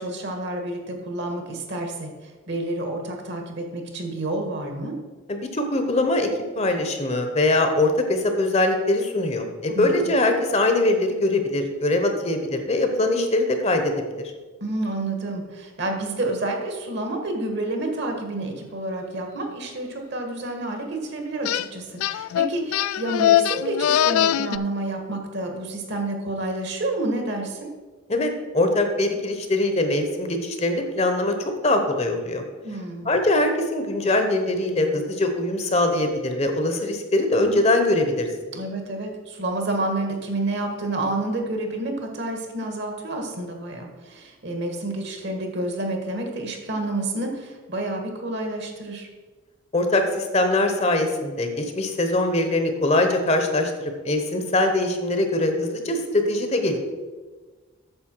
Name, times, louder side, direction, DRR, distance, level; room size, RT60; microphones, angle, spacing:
voice 1, 0.0-4.9 9.7-10.1 14.6-27.7 32.6-33.1 38.5-49.1, right 2 dB, 55° right, 3 dB, 1.5 m, -29 dB
voice 2, 5.3-6.3 6.6-14.3 28.1-31.3 31.6-32.4 33.0-38.3 49.7-53.7 54.0-56.8, left 2 dB, 30° left, 6 dB, 0.9 m, -22 dB
sound 1, 21.4-21.7 22.0-24.6, left 11 dB, 85° left, 0.3 m, -21 dB
8.7 x 6.8 x 4.5 m, 1.3 s
head